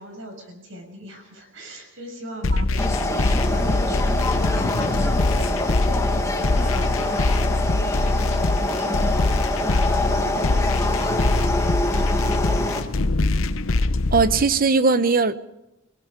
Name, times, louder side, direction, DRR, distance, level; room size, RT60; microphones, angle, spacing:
voice 1, 0.0-12.9, equal, 65° right, 4 dB, 6.3 m, -39 dB
sound 1, 2.4-14.4, left 2 dB, 70° left, 0.9 m, -23 dB
sound 2, 2.8-12.8, left 2 dB, 15° left, 1.7 m, -25 dB
voice 2, 14.1-15.4, right 4 dB, 45° right, 13 dB, 0.9 m, -19 dB
29.5 x 19.0 x 5.1 m, 0.88 s
head